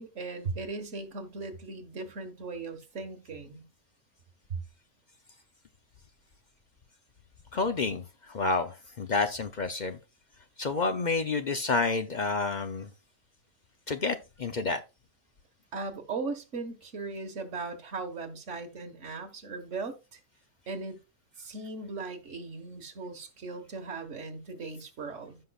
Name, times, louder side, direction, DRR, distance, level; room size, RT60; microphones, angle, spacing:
voice 1, 0.0-3.7 15.7-20.2 20.7-21.0 21.4-25.4, right 3 dB, 60° right, 1.7 m, -38 dB
voice 2, 7.5-10.0 10.6-12.9 13.9-14.8, left 3 dB, 50° left, 0.5 m, -29 dB
15.0 x 5.7 x 2.4 m
omnidirectional pair, 1.4 m